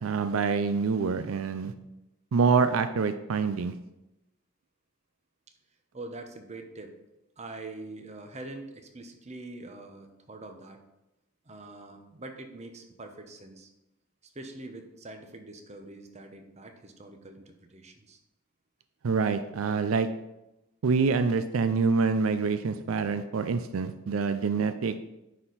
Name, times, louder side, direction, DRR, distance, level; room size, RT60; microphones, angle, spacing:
voice 1, 0.0-1.7 2.3-3.7 19.0-20.1 20.8-24.9, right 5 dB, 85° right, 10 dB, 0.4 m, -26 dB
voice 2, 5.9-7.0 7.4-10.8 11.4-13.7 14.2-18.2, right 2 dB, 35° right, 5 dB, 0.9 m, -44 dB
9.7 x 4.3 x 4.0 m, 0.92 s
head